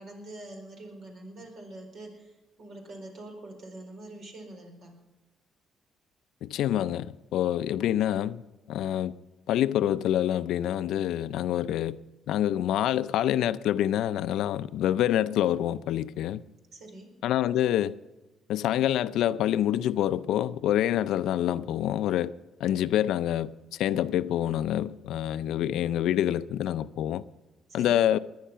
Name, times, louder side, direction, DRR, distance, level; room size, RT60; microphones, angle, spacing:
voice 1, 0.0-4.9 16.7-17.1 27.7-28.0, right 2 dB, 65° right, 4.5 m, -45 dB
voice 2, 6.4-8.4 8.7-9.1 9.5-12.0 12.3-16.4 17.2-18.0 18.5-22.3 22.6-27.2 27.7-28.2, left 11 dB, 85° left, 0.5 m, -26 dB
20.0 x 10.0 x 5.7 m
cardioid pair, 90°, 0 cm